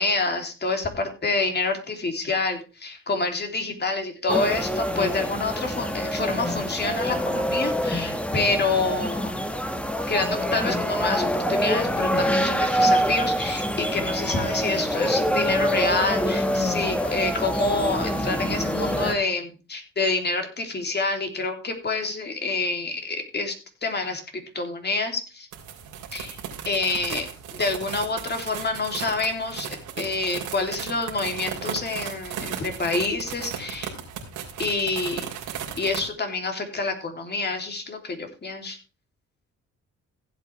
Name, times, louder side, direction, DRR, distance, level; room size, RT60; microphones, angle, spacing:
voice 1, 0.0-9.3 10.1-23.5 23.8-24.2 24.5-25.5 26.1-26.4 26.6-33.9 34.6-35.3 35.8-38.8, left 3 dB, 35° left, 4 dB, 3.2 m, -27 dB
sound 1, 4.3-19.1, equal, 5° left, 1.6 m, -25 dB
sound 2, 25.5-36.1, right 8 dB, 85° right, 3.3 m, -36 dB
15.5 x 8.3 x 3.4 m, 0.33 s
cardioid pair, 90°, 30 cm